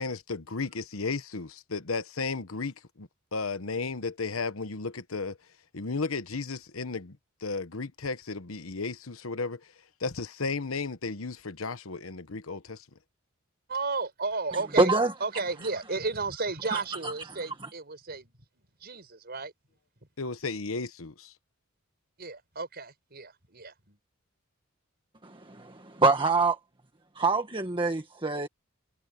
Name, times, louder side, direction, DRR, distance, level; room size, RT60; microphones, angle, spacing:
voice 1, 0.0-5.4 5.7-7.2 7.4-9.6 10.0-12.8 20.2-21.3, left 4 dB, 75° left, 1.2 m, -34 dB
voice 2, 13.7-14.9 15.2-18.3 18.8-19.5 22.2-24.0, right 3 dB, 50° right, 5.7 m, -33 dB
voice 3, 14.8-15.1 16.7-17.7 25.2-26.6 27.1-28.5, right 3 dB, 25° right, 1.5 m, -26 dB
head